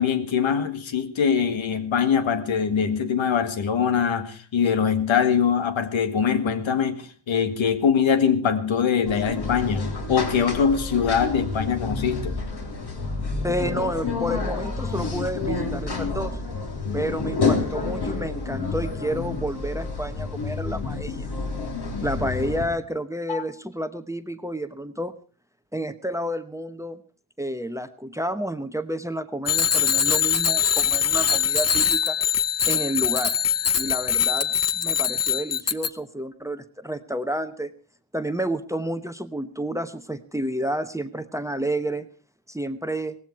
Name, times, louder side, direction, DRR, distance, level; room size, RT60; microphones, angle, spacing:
voice 1, 0.0-12.4 23.3-23.4, left 7 dB, 75° left, 1.9 m, -23 dB
sound 1, 9.1-22.7, left 4 dB, 55° left, 3.8 m, -29 dB
voice 2, 13.4-16.4 16.9-21.3 22.0-25.1 25.7-27.0 27.4-32.2 32.7-33.3 33.8-37.7 38.1-42.1 42.5-43.2, right 1 dB, 5° right, 0.9 m, -30 dB
Bicycle bell, 29.5-35.9, left 7 dB, 35° left, 0.8 m, -22 dB
18.0 x 15.5 x 4.6 m
cardioid pair, 90°, 46 cm